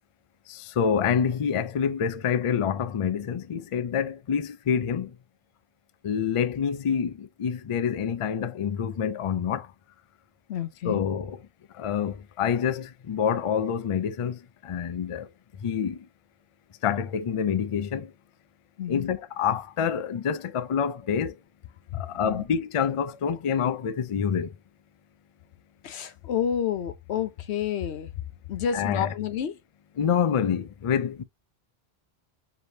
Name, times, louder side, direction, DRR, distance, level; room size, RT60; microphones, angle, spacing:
voice 1, 0.5-5.1 6.0-9.7 10.8-11.4 11.8-15.3 15.6-16.0 16.8-18.1 18.9-21.3 22.0-24.5 28.7-29.1 30.0-31.2, left 7 dB, 50° left, 0.4 m, -27 dB
voice 2, 10.5-11.0 18.8-19.1 21.9-22.4 25.8-28.1 28.5-29.6, left 9 dB, 90° left, 1.0 m, -30 dB
4.7 x 3.3 x 2.7 m
omnidirectional pair, 1.1 m